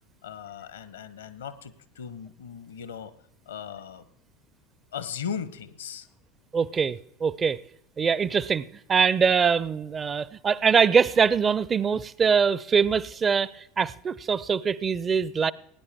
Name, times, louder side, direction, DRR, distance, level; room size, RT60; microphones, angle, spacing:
voice 1, 0.2-3.1 3.5-4.1 4.9-6.1, left 7 dB, 70° left, 15 dB, 0.8 m, -37 dB
voice 2, 6.5-7.6 8.0-15.5, right 6 dB, 25° right, 19 dB, 0.4 m, -23 dB
19.0 x 9.8 x 3.5 m, 0.76 s
figure-of-eight pair, 75°, 0 cm